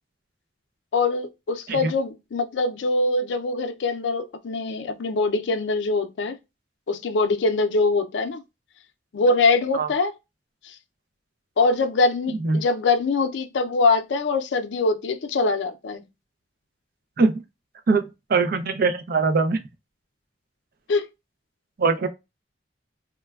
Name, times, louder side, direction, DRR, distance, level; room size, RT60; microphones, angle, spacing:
voice 1, 0.9-6.3 6.9-8.4 9.1-10.1 11.6-16.0 20.9-21.0, left 3 dB, 85° left, 0.4 m, -23 dB
voice 2, 12.3-12.6 17.2-17.4 17.9-19.6 21.8-22.1, right 4 dB, 55° right, 0.5 m, -22 dB
3.1 x 2.2 x 2.2 m
head